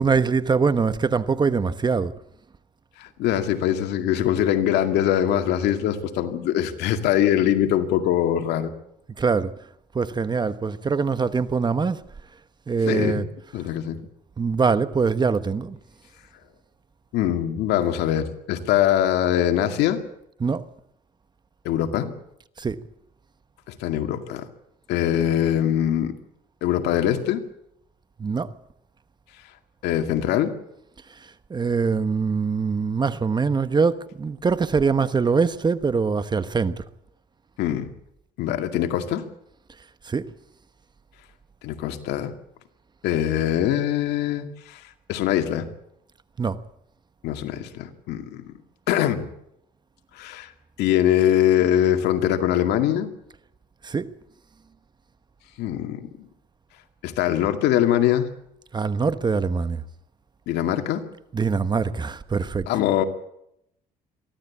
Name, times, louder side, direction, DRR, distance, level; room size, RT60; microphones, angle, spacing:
voice 1, 0.0-2.1 9.2-9.5 9.9-12.0 12.7-13.2 14.4-15.8 20.4-20.6 22.6-22.8 28.2-28.5 31.5-36.7 40.0-40.3 46.4-46.6 53.8-54.1 58.7-59.8 61.3-62.7, right 5 dB, 25° right, 1.1 m, -23 dB
voice 2, 3.0-8.7 12.9-13.2 13.5-14.0 17.1-20.0 21.6-22.1 23.7-24.4 24.9-26.1 26.6-27.4 29.8-30.5 37.6-37.9 38.4-39.2 41.6-42.3 43.0-44.8 45.1-45.7 47.2-48.4 48.9-49.3 50.2-50.5 50.8-53.1 55.6-56.3 57.0-58.3 60.5-61.0 62.7-63.0, left 11 dB, 85° left, 2.2 m, -22 dB
23.0 x 15.0 x 8.5 m
cardioid pair, 110°, 17 cm